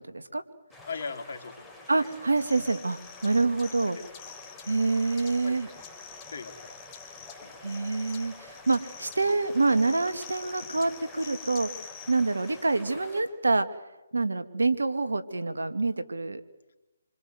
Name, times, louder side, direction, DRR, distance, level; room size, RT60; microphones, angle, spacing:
voice 1, 0.1-0.4 1.9-4.0 4.7-5.7 7.6-11.7 12.1-13.7 14.1-16.4, right 3 dB, 85° right, 10 dB, 2.3 m, -26 dB
sound 1, 0.7-13.2, left 2 dB, ahead, 6.2 m, -49 dB
voice 2, 0.8-2.1 3.3-3.4 5.4-5.6 6.3-6.8 7.4-7.6, left 4 dB, 60° left, 6 dB, 3.2 m, -39 dB
sound 2, 2.0-12.9, left 9 dB, 25° left, 2.5 m, -47 dB
27.5 x 25.0 x 8.0 m, 1.0 s
figure-of-eight pair, 150°, 0 cm